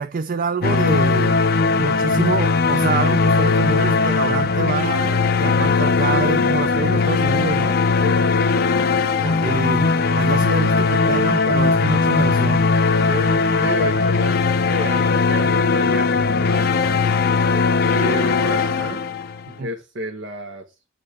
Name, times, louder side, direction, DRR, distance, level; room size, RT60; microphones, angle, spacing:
voice 1, 0.0-1.4 1.8-7.8 9.2-9.9 10.2-12.6 19.5-19.7, right 4 dB, 45° right, 0.4 m, -26 dB
sound 1, 0.6-19.5, left 4 dB, 50° left, 0.6 m, -19 dB
voice 2, 5.4-5.7 8.0-8.5 9.4-9.7 13.0-19.0 19.6-20.6, right 1 dB, 70° right, 1.3 m, -32 dB
9.0 x 3.7 x 4.8 m
head